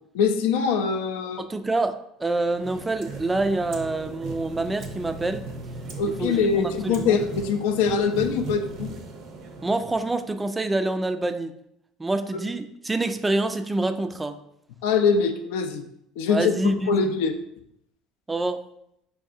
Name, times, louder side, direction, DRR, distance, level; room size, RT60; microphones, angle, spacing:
voice 1, 0.1-1.4 6.0-8.9 12.3-12.4 14.8-15.8 16.2-17.3, left 5 dB, 80° left, 6 dB, 0.4 m, -23 dB
voice 2, 1.4-1.9 2.2-5.4 6.2-7.2 9.6-11.5 12.0-14.4 16.3-17.1 18.3-18.6, right 2 dB, 15° right, 9 dB, 0.3 m, -26 dB
sound 1, 2.3-10.5, right 3 dB, 60° right, 0.6 m, -38 dB
4.6 x 2.6 x 2.4 m, 0.77 s
supercardioid pair, 85°, 0 cm